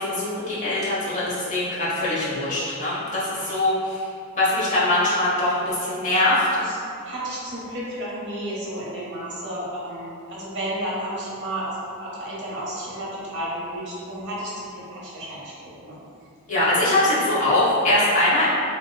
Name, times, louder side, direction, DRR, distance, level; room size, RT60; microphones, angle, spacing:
voice 1, 0.0-4.1 4.4-6.5 16.5-18.5, left 1 dB, 35° left, -10 dB, 1.0 m, -22 dB
voice 2, 7.0-15.4 15.8-16.0, right 1 dB, 55° right, -7 dB, 0.8 m, -32 dB
3.0 x 2.8 x 2.2 m, 2.4 s
head